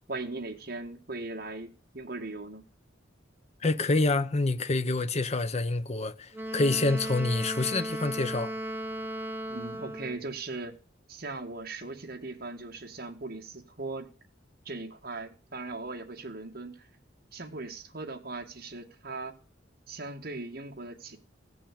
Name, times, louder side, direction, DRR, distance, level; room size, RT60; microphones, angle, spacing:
voice 1, 0.1-2.6 9.5-10.8 11.1-14.1 14.7-16.9 17.3-19.4 19.9-21.2, right 3 dB, 55° right, 2.0 m, -39 dB
voice 2, 3.6-8.5, left 2 dB, 35° left, 0.7 m, -27 dB
Wind instrument woodwind instrument, 6.3-10.3, right 1 dB, 10° right, 0.9 m, -36 dB
15.5 x 6.1 x 8.4 m
head